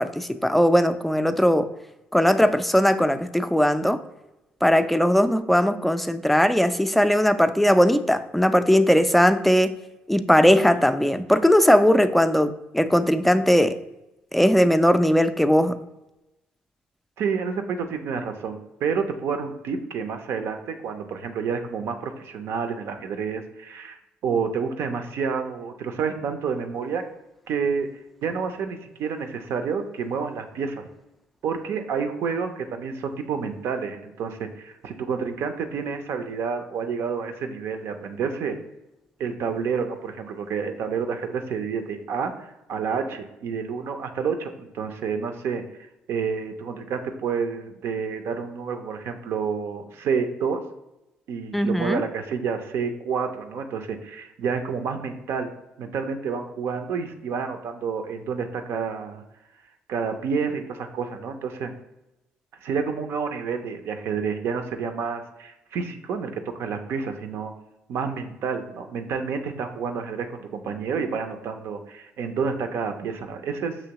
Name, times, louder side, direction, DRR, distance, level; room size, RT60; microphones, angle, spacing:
voice 1, 0.0-1.7 2.1-4.0 4.6-9.7 10.1-13.8 14.3-15.8 51.5-52.0, equal, 5° left, 10 dB, 0.4 m, -19 dB
voice 2, 17.2-27.0 27.5-27.9 28.2-30.9 31.4-38.6 39.2-42.3 42.7-45.6 46.1-50.6 51.3-55.5 55.8-59.2 59.9-61.7 62.6-67.5 67.9-73.8, right 6 dB, 70° right, 7 dB, 0.6 m, -29 dB
6.2 x 2.9 x 2.9 m, 0.95 s
supercardioid pair, 70°, 4 cm